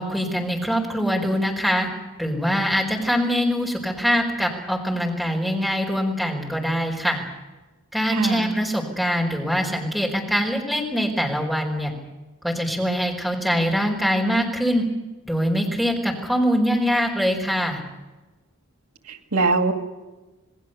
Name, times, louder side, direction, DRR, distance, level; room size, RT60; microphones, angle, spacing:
voice 1, 0.0-1.9 2.2-7.2 7.9-11.9 12.4-14.8 15.3-17.8, equal, ahead, 0 dB, 4.7 m, -23 dB
voice 2, 8.1-8.5 19.1-19.7, right 3 dB, 90° right, 5 dB, 2.4 m, -22 dB
28.5 x 19.0 x 6.9 m, 1.1 s
head